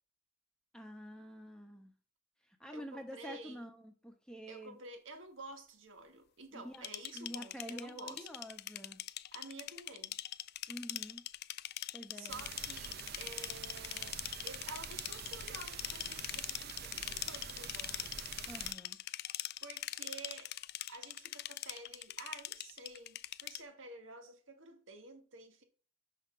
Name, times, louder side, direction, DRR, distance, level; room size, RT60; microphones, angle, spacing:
voice 1, 0.7-1.9 2.6-4.8 6.5-6.9 7.1-9.0 10.7-11.2 11.9-12.4 18.5-19.0, equal, 5° left, 1.1 m, -47 dB
voice 2, 2.7-3.6 4.5-8.3 9.3-10.2 12.1-18.2 19.6-20.5 20.9-25.6, right 3 dB, 75° right, 1.8 m, -51 dB
sound 1, 6.7-23.6, left 15 dB, 55° left, 0.3 m, -42 dB
sound 2, 12.3-18.7, right 7 dB, 55° right, 0.7 m, -47 dB
5.9 x 5.8 x 5.7 m
head